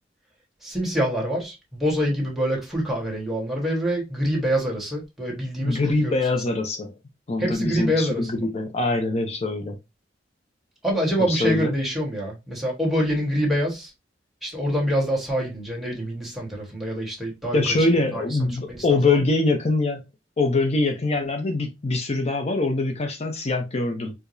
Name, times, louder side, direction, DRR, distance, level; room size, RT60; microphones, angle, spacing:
voice 1, 0.6-6.1 6.5-6.6 7.4-8.5 10.8-13.9 14.4-17.6 18.1-19.2, equal, ahead, 1.2 m, -26 dB
voice 2, 5.6-6.9 7.3-9.8 11.3-11.7 17.5-20.0 20.4-24.1, left 2 dB, 35° left, 0.5 m, -23 dB
4.6 x 2.0 x 2.6 m
head